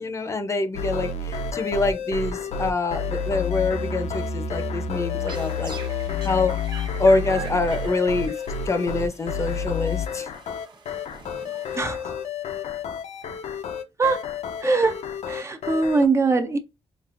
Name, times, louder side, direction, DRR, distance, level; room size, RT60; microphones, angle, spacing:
voice 1, 0.0-5.7 6.2-6.5 7.0-8.3 8.6-10.3, left 3 dB, 25° left, 0.6 m, -25 dB
sound 1, 0.7-16.1, left 5 dB, 75° left, 0.6 m, -30 dB
sound 2, 4.9-12.2, right 4 dB, 40° right, 0.9 m, -43 dB
voice 2, 11.7-12.1 14.0-14.3 14.6-15.0 15.3-16.6, right 4 dB, 25° right, 0.5 m, -22 dB
5.1 x 2.4 x 2.4 m
wide cardioid pair, 160°, 11 cm